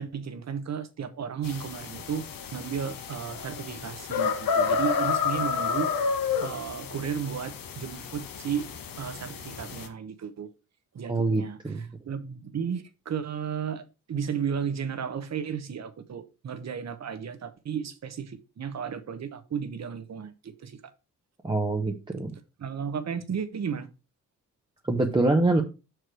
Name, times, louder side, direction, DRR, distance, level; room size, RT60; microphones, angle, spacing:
voice 1, 0.0-2.2 2.5-5.9 6.4-8.7 9.0-10.5 10.9-20.8 22.6-23.9, right 7 dB, 55° right, 1.0 m, -34 dB
sound 1, 1.4-9.9, left 5 dB, 90° left, 1.2 m, -30 dB
voice 2, 11.1-11.8 21.4-22.3 24.9-25.6, right 2 dB, 15° right, 0.7 m, -25 dB
6.4 x 4.7 x 4.6 m
wide cardioid pair, 140°, 33 cm